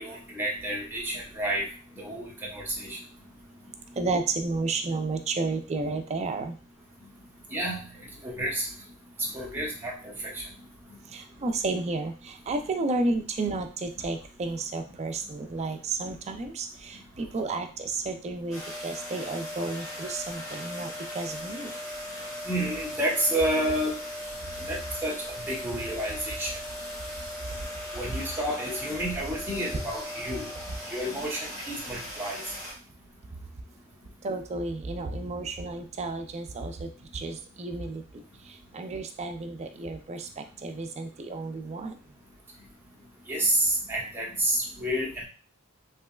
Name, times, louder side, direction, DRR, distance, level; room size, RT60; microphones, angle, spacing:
voice 1, 0.0-1.6 2.0-3.0 7.5-7.8 8.2-8.7 9.3-10.1 22.5-23.9 24.7-24.8 25.0-26.5 27.9-30.5 30.9-32.4 43.3-45.1, right 1 dB, 10° right, -3 dB, 0.8 m, -29 dB
voice 2, 4.0-6.5 11.1-21.7 34.2-38.2 38.7-42.0, right 3 dB, 30° right, 6 dB, 0.4 m, -32 dB
sound 1, 18.5-32.7, left 1 dB, 15° left, 1.2 m, -38 dB
3.2 x 2.9 x 2.3 m, 0.37 s
head